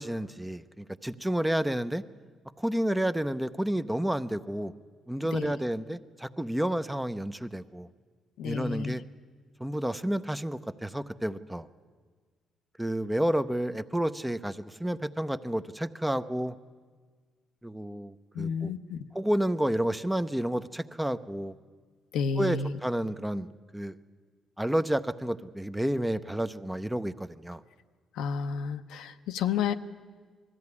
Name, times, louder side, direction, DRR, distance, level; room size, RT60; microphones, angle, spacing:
voice 1, 0.0-2.0 2.6-4.7 5.1-7.9 8.4-9.0 9.6-11.7 12.8-16.5 17.6-18.7 19.1-21.6 22.4-23.5 23.7-24.0 24.6-27.6, right 1 dB, 5° right, 12 dB, 0.6 m, -30 dB
voice 2, 8.4-9.0 18.3-19.0 22.1-22.8 28.1-29.7, left 6 dB, 90° left, 8 dB, 0.7 m, -31 dB
20.0 x 14.0 x 9.7 m, 1.5 s
cardioid pair, 90°, 0 cm